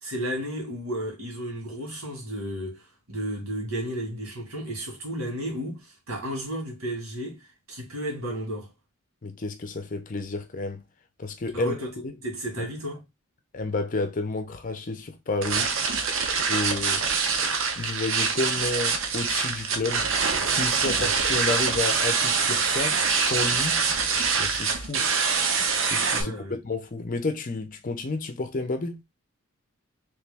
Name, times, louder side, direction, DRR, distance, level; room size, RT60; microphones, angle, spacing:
voice 1, 0.0-8.7 11.5-13.0 21.0-21.1 26.2-26.6, equal, 85° right, 2.0 m, -33 dB
voice 2, 9.2-10.8 11.2-11.7 12.0-12.1 12.6-12.7 13.5-15.7 16.5-17.1 17.8-20.1 20.5-23.8 24.4-25.1 25.8-26.3 26.6-29.0, left 3 dB, 40° left, 0.6 m, -31 dB
sound 1, 15.4-26.2, right 5 dB, 65° right, 0.7 m, -25 dB
3.3 x 3.0 x 3.4 m
head